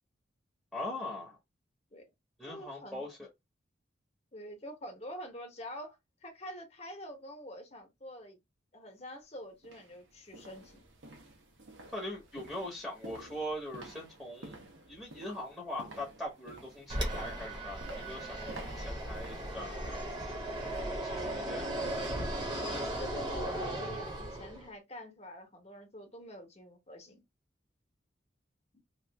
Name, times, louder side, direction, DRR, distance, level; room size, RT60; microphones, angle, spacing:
voice 1, 0.7-1.4 2.4-3.3 11.9-14.6 14.9-20.0 20.9-21.7, left 1 dB, 5° left, 0.9 m, -41 dB
voice 2, 2.5-3.0 4.3-8.4 8.7-10.8 22.6-27.2 28.7-28.8, equal, 35° left, 0.9 m, -46 dB
sound 1, 8.9-9.0 9.6-20.8 21.2-21.4 21.9-22.0, right 2 dB, 80° right, 1.0 m, -52 dB
Fixed-wing aircraft airplane, 16.9-24.7, right 1 dB, 25° right, 0.9 m, -36 dB
2.9 x 2.5 x 3.3 m
head